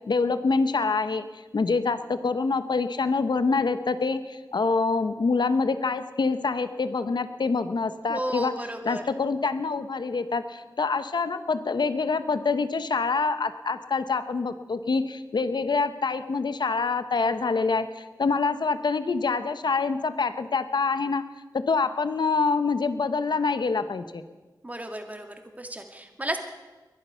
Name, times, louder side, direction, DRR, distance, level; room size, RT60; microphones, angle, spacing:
voice 1, 0.0-1.2 1.5-21.2 21.5-24.2, left 4 dB, 75° left, 11 dB, 0.8 m, -26 dB
voice 2, 8.1-9.0 24.6-26.4, right 1 dB, 20° right, 4 dB, 2.0 m, -33 dB
21.0 x 11.5 x 5.7 m, 1.3 s
wide cardioid pair, 70°, 8 cm